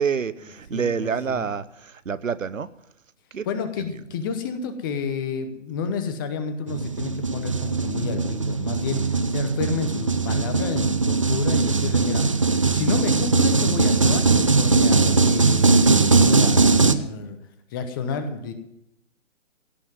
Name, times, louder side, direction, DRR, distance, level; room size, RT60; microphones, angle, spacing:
voice 1, 0.0-1.6 2.1-2.7 3.3-3.4, right 6 dB, 90° right, 16 dB, 0.8 m, -26 dB
voice 2, 0.7-1.5 3.4-9.0 9.3-12.2 12.7-17.4 17.7-18.5, left 6 dB, 15° left, 9 dB, 0.8 m, -30 dB
sound 1, 6.7-17.0, right 4 dB, 25° right, 0.4 m, -20 dB
16.5 x 5.7 x 9.5 m, 0.82 s
figure-of-eight pair, 145°, 38 cm